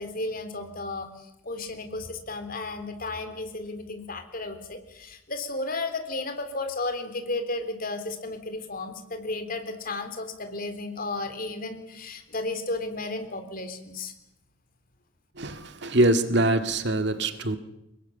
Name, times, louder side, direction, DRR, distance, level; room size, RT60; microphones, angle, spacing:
voice 1, 0.0-14.1, left 2 dB, 45° left, 8 dB, 3.7 m, -33 dB
voice 2, 15.4-17.6, right 1 dB, 55° right, 8 dB, 1.9 m, -23 dB
25.0 x 21.5 x 8.9 m, 0.84 s
head